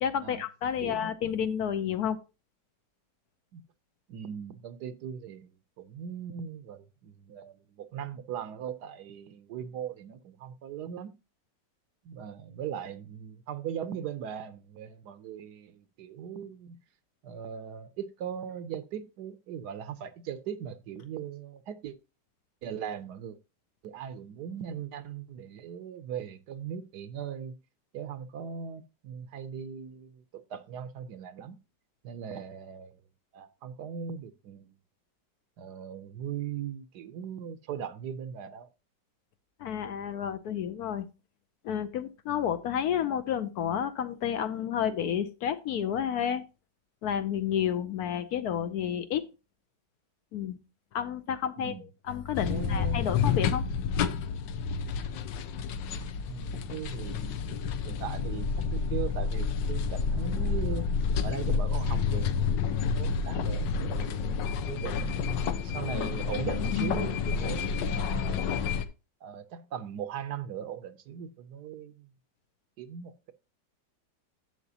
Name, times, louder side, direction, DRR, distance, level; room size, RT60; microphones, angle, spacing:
voice 1, 0.0-2.2 39.6-41.1 41.6-46.4 47.0-49.2 50.3-50.6 50.9-51.7 52.0-53.7, left 9 dB, 70° left, 1.0 m, -30 dB
voice 2, 0.8-1.1 3.5-3.6 4.1-11.1 12.0-16.8 17.2-22.0 22.6-23.4 23.8-27.6 27.9-31.6 32.0-33.0 33.3-34.8 35.6-38.7 51.6-51.9 52.4-53.1 56.3-57.5 57.8-60.9 61.2-65.3 65.6-68.5 69.2-72.1 72.8-73.3, right 8 dB, 70° right, 1.2 m, -39 dB
sound 1, 52.4-68.9, left 6 dB, 85° left, 1.4 m, -29 dB
11.0 x 7.8 x 2.8 m
omnidirectional pair, 1.9 m